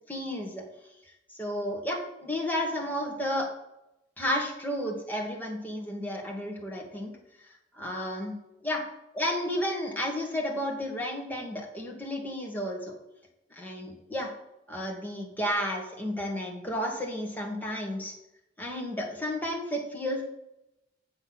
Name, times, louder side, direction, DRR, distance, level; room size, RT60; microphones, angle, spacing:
voice 1, 0.1-0.6 1.3-3.5 4.2-7.1 7.7-8.4 8.6-8.8 9.2-12.9 13.5-14.3 14.7-18.1 18.6-20.2, equal, 10° left, 0 dB, 1.9 m, -32 dB
7.9 x 6.0 x 6.0 m, 0.89 s
head